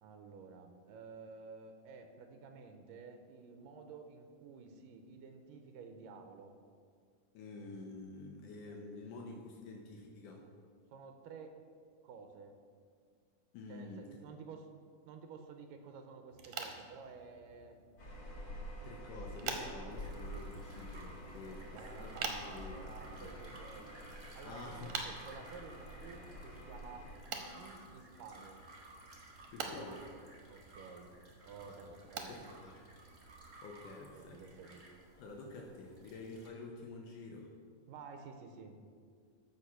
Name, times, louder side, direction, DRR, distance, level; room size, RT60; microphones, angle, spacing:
voice 1, 0.0-6.6 10.9-11.6 12.0-12.6 13.7-14.7 15.1-17.8 21.5-23.9 24.3-28.7 30.5-31.1 31.4-32.4 34.1-34.9 37.9-38.8, right 5 dB, 90° right, 6 dB, 2.4 m, -52 dB
voice 2, 7.3-10.5 13.5-14.2 18.8-23.4 24.4-25.1 29.5-30.1 31.7-31.8 32.3-32.9 33.6-34.4 35.2-37.5, left 2 dB, 80° left, 0 dB, 2.3 m, -49 dB
sound 1, 16.3-33.6, right 5 dB, 65° right, 2.1 m, -48 dB
sound 2, 18.0-27.2, equal, 40° left, 1.4 m, -48 dB
sound 3, 19.9-36.5, right 1 dB, 45° right, 0.8 m, -57 dB
14.0 x 5.0 x 5.7 m, 2.1 s
omnidirectional pair, 3.8 m